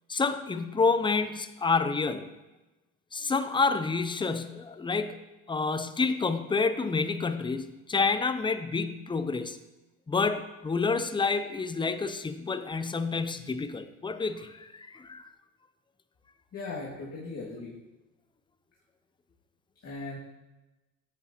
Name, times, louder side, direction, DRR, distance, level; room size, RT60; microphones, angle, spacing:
voice 1, 0.1-2.3 3.1-5.2 5.5-9.6 10.1-15.3, left 4 dB, 10° left, 11 dB, 0.5 m, -28 dB
voice 2, 16.5-17.8 19.8-20.2, left 3 dB, 35° left, -6 dB, 2.2 m, -38 dB
10.5 x 8.1 x 2.9 m, 1.0 s
supercardioid pair, 90°, 40 cm